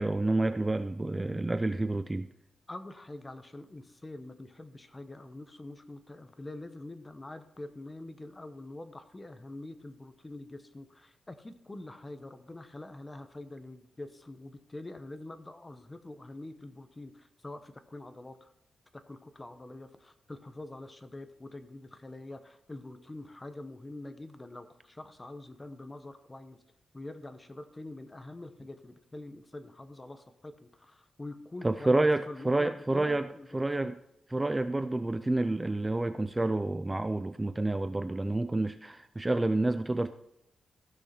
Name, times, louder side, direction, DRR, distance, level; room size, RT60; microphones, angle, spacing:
voice 1, 0.0-2.3 31.6-33.3 33.5-34.0 34.3-40.1, right 2 dB, 15° right, 10 dB, 0.4 m, -29 dB
voice 2, 2.7-18.5 18.9-26.6 26.9-33.9, left 2 dB, 20° left, 9 dB, 0.9 m, -45 dB
15.5 x 6.3 x 4.3 m, 0.80 s
wide cardioid pair, 130°, 0 cm